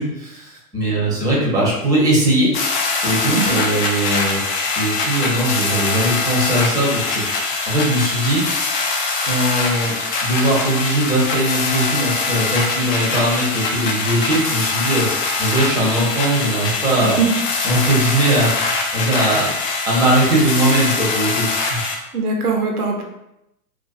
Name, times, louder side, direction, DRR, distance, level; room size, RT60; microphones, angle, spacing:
voice 1, 0.0-2.5 3.0-4.4 4.8-8.4 9.2-10.0 10.2-17.2 17.6-19.5 19.9-21.9, right 1 dB, 10° right, -5 dB, 0.6 m, -20 dB
sound 1, 2.5-21.9, left 3 dB, 35° left, 0.4 m, -23 dB
voice 2, 22.1-23.0, right 4 dB, 80° right, 2 dB, 0.7 m, -21 dB
2.4 x 2.2 x 2.3 m, 0.86 s
hypercardioid pair, 105°, 45 cm